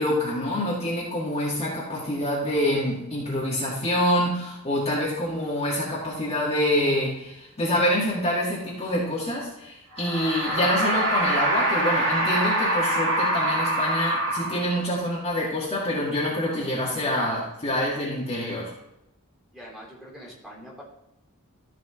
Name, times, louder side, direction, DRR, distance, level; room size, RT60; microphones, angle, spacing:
voice 1, 0.0-18.7, left 1 dB, 30° left, -6 dB, 2.0 m, -26 dB
sound 1, 9.9-15.0, right 1 dB, 60° right, 1.9 m, -25 dB
voice 2, 19.5-20.8, equal, ahead, -4 dB, 3.1 m, -44 dB
14.5 x 5.0 x 3.7 m, 0.87 s
head